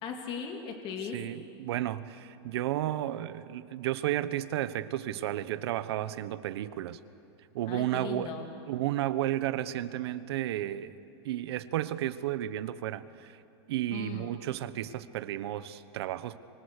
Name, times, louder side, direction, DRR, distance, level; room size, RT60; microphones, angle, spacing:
voice 1, 0.0-1.2 7.7-8.5 13.9-14.3, left 6 dB, 35° left, 3 dB, 2.5 m, -38 dB
voice 2, 1.1-7.0 7.5-8.3 8.7-11.0 11.2-13.3 13.7-16.4, right 13 dB, 70° right, 13 dB, 1.2 m, -33 dB
29.0 x 25.0 x 6.7 m, 2.8 s
supercardioid pair, 155°, 14 cm